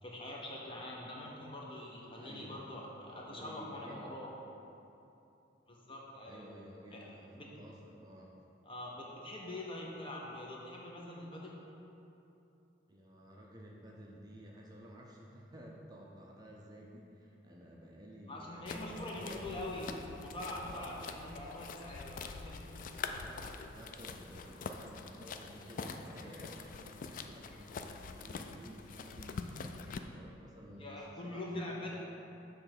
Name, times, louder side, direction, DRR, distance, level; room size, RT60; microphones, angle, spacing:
voice 1, 0.0-4.3 5.7-6.4 6.9-7.1 7.3-7.5 8.7-11.6 18.3-23.2 30.8-31.9, left 1 dB, 30° left, -3 dB, 0.7 m, -44 dB
voice 2, 2.2-2.6 3.1-4.2 6.2-8.3 12.9-19.9 20.6-21.1 23.2-29.6 30.1-31.9, equal, 20° right, -2 dB, 0.5 m, -52 dB
sound 1, 18.7-30.0, left 4 dB, 45° left, 0.3 m, -45 dB
6.7 x 3.3 x 5.9 m, 2.8 s
head